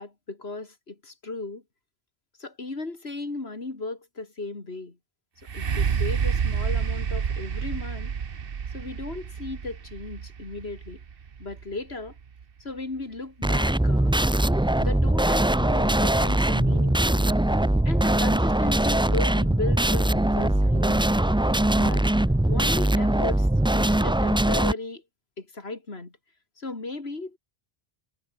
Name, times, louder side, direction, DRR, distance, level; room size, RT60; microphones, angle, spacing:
voice 1, 0.0-1.6 2.4-5.0 5.5-8.1 8.7-11.0 11.4-12.1 12.6-14.1 14.8-17.3 17.8-21.2 21.7-22.1 22.5-25.0 25.4-26.1 26.6-27.4, left 3 dB, 85° left, 3.4 m, -36 dB
sound 1, 5.4-13.2 13.8-13.9, right 7 dB, 65° right, 1.2 m, -29 dB
sound 2, 13.4-24.7, right 1 dB, 5° right, 0.4 m, -22 dB
omnidirectional pair, 1.0 m